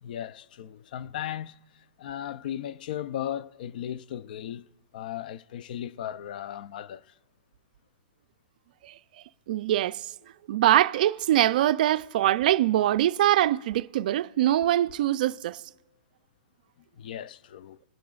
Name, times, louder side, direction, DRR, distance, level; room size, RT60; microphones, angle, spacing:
voice 1, 0.0-4.7 4.9-7.2 16.9-17.8, left 10 dB, 60° left, 0.4 m, -36 dB
voice 2, 9.5-10.1 10.5-15.6, right 13 dB, 55° right, 0.3 m, -23 dB
20.0 x 7.2 x 2.4 m
hypercardioid pair, 140°, 5 cm